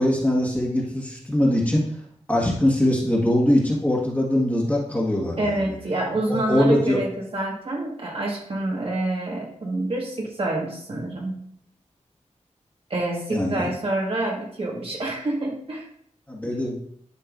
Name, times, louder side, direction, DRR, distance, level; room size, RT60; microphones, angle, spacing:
voice 1, 0.0-1.9 2.3-5.6 6.3-7.0 13.3-13.7 16.3-16.8, left 1 dB, 10° left, -4 dB, 1.8 m, -22 dB
voice 2, 5.4-11.4 12.9-15.9, right 2 dB, 50° right, -2 dB, 1.7 m, -27 dB
11.0 x 5.4 x 2.6 m, 0.66 s
wide cardioid pair, 125°, 12 cm